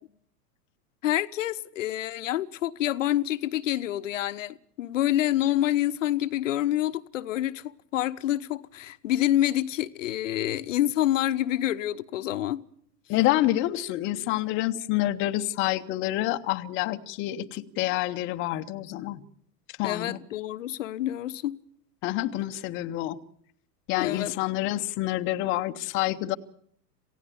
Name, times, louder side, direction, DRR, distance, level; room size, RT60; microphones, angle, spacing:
voice 1, 1.0-12.6 19.8-21.6 24.0-24.3, left 13 dB, 50° left, 0.9 m, -27 dB
voice 2, 13.1-19.2 19.8-20.2 22.0-23.2 23.9-26.4, left 15 dB, 25° left, 0.8 m, -27 dB
28.0 x 16.5 x 6.9 m
figure-of-eight pair, 95°, 48 cm